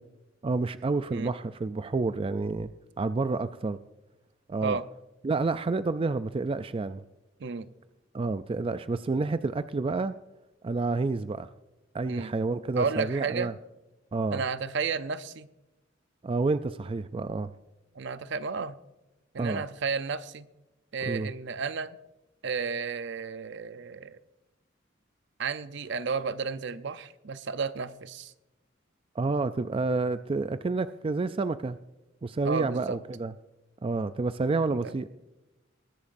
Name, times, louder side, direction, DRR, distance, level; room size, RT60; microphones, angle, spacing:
voice 1, 0.4-2.7 3.0-3.8 4.5-4.8 5.2-7.0 8.1-10.1 10.6-11.5 11.9-13.5 14.1-14.4 16.2-17.5 19.4-19.6 21.1-21.3 29.2-31.8 32.2-33.3 33.8-35.1, right 3 dB, 30° right, 12 dB, 0.4 m, -29 dB
voice 2, 12.8-13.5 14.3-15.5 17.9-18.8 19.3-20.5 20.9-22.0 22.4-24.2 25.4-28.3 32.4-33.0 34.7-34.9, right 5 dB, 65° right, 13 dB, 0.6 m, -32 dB
21.0 x 10.5 x 2.6 m, 1.0 s
head